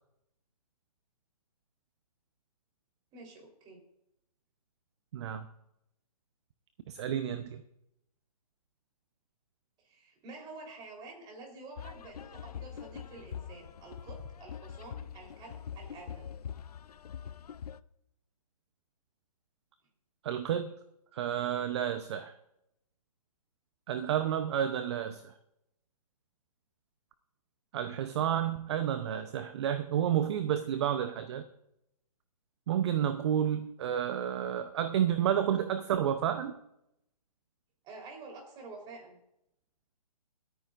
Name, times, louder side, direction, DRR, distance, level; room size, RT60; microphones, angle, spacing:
voice 1, 3.1-3.8 9.8-16.3 37.8-39.2, right 3 dB, 20° right, 1 dB, 3.9 m, -49 dB
voice 2, 5.1-5.5 6.9-7.6 20.2-20.7 21.1-22.3 23.9-25.3 27.7-31.4 32.7-36.5, right 10 dB, 45° right, 10 dB, 0.8 m, -30 dB
sound 1, 11.8-17.8, left 8 dB, 70° left, 0.5 m, -44 dB
28.0 x 9.3 x 2.6 m, 0.83 s
hypercardioid pair, 140°, 20 cm